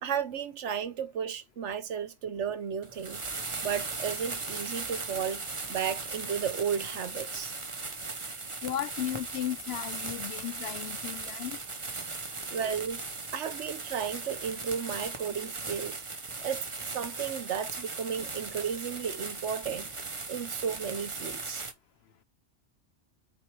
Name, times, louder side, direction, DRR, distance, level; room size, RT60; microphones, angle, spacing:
voice 1, 0.0-3.2 3.6-7.5 12.5-13.0 13.3-16.0 16.4-19.9 20.3-21.6, right 7 dB, 75° right, 1.2 m, -34 dB
sound 1, 2.8-21.7, right 3 dB, 25° right, 1.0 m, -38 dB
voice 2, 8.6-11.6, left 11 dB, 65° left, 0.8 m, -35 dB
6.4 x 4.8 x 3.3 m
omnidirectional pair, 1.2 m